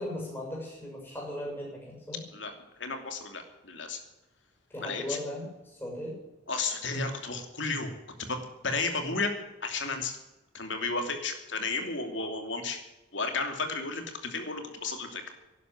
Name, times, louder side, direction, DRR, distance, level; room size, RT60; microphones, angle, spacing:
voice 1, 0.0-2.2 4.7-6.2, left 1 dB, 10° left, -3 dB, 6.7 m, -37 dB
voice 2, 2.8-4.0 4.8-5.2 6.5-7.9 8.3-9.3 9.6-10.1 10.5-12.8 13.1-15.3, left 3 dB, 75° left, 5 dB, 2.8 m, -33 dB
12.0 x 11.0 x 9.3 m, 1.0 s
head